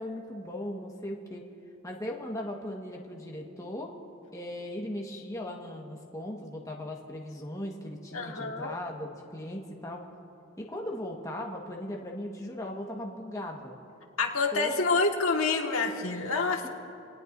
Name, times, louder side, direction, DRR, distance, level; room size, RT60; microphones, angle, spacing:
voice 1, 0.0-1.4 1.8-3.9 4.3-10.0 10.6-13.7 14.5-15.0, left 1 dB, 15° left, -1 dB, 1.5 m, -38 dB
voice 2, 8.1-8.7 14.2-16.7, left 3 dB, 75° left, 1 dB, 1.7 m, -27 dB
28.5 x 19.0 x 2.7 m, 2.6 s
head